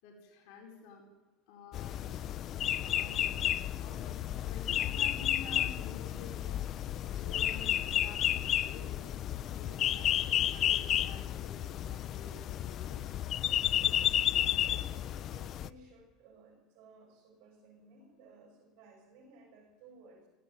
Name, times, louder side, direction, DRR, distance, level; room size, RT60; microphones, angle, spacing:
voice 1, 0.0-1.1 1.5-2.2 2.8-3.3 3.8-4.2 4.4-6.9 7.1-9.1 9.5-13.0, left 4 dB, 70° left, 1 dB, 4.7 m, -50 dB
sound 1, 1.7-15.7, left 11 dB, 45° left, 0.7 m, -32 dB
voice 2, 14.3-20.3, right 3 dB, 65° right, 1 dB, 7.0 m, -58 dB
17.5 x 17.0 x 9.4 m, 1.1 s
supercardioid pair, 125°, 0 cm